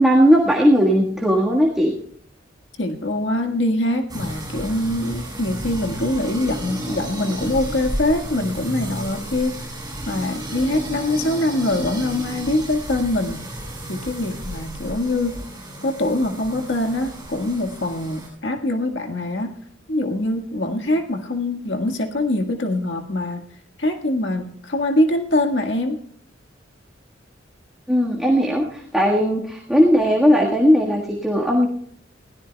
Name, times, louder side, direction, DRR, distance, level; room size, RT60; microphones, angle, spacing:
voice 1, 0.0-1.9 27.9-31.7, equal, ahead, -2 dB, 1.6 m, -17 dB
voice 2, 2.8-9.6 10.1-13.4 13.9-15.4 15.8-19.5 19.9-23.5 23.8-26.0, left 1 dB, 70° left, 4 dB, 1.7 m, -23 dB
sound 1, 4.1-18.3, right 1 dB, 20° right, 7.6 m, -32 dB
21.5 x 16.5 x 2.3 m, 0.64 s
head